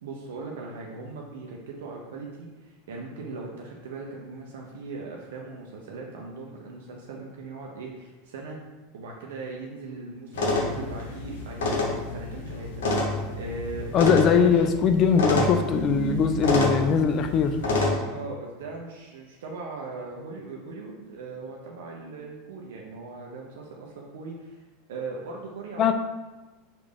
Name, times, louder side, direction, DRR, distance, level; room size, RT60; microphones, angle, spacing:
voice 1, 0.0-8.6 8.9-14.7 18.1-25.9, right 3 dB, 75° right, -1 dB, 0.4 m, -39 dB
sound 1, 10.3-17.9, left 2 dB, 75° left, 0.7 m, -27 dB
voice 2, 13.9-17.6 25.8-25.9, left 6 dB, 40° left, 8 dB, 0.3 m, -21 dB
3.2 x 2.4 x 3.5 m, 1.2 s
hypercardioid pair, 95°, 0 cm